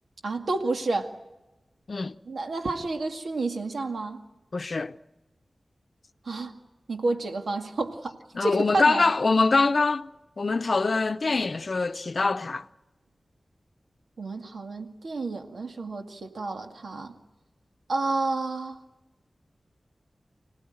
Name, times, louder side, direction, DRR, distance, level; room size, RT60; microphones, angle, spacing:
voice 1, 0.2-1.1 2.3-4.2 6.3-6.6 6.9-9.1 14.2-17.1 17.9-18.8, right 3 dB, 90° right, 2.1 m, -30 dB
voice 2, 4.5-5.0 8.3-10.1 10.4-12.7, left 3 dB, 60° left, 0.7 m, -24 dB
26.0 x 18.5 x 8.9 m
wide cardioid pair, 90°, 0 cm